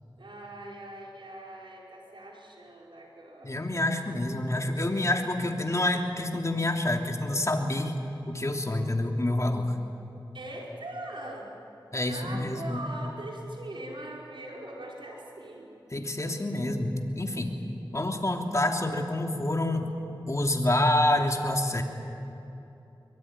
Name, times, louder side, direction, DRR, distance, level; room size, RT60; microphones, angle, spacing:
voice 1, 0.2-3.6 10.3-11.5 12.1-15.7, right 1 dB, 90° right, -2 dB, 5.1 m, -41 dB
voice 2, 3.4-7.9 8.3-9.7 11.9-12.8 15.9-17.5 17.9-19.9 20.3-21.8, left 1 dB, 40° left, 3 dB, 3.1 m, -27 dB
23.5 x 23.0 x 9.9 m, 2.9 s
wide cardioid pair, 45°, 8 cm